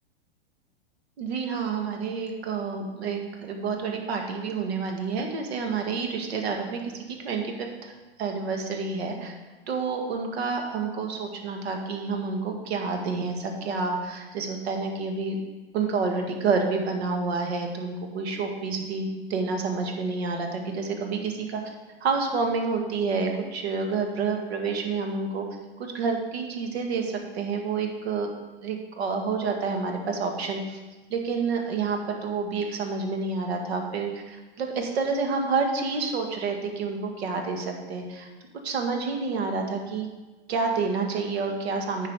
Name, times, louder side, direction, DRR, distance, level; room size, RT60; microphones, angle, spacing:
voice 1, 1.2-7.9 8.2-9.3 9.7-15.4 15.7-21.7 22.0-25.5 25.8-28.3 28.6-30.8 31.1-38.3 38.6-40.1 40.5-42.1, right 4 dB, 65° right, 3 dB, 1.9 m, -29 dB
9.4 x 5.7 x 4.8 m, 1.2 s
hypercardioid pair, 115°, 34 cm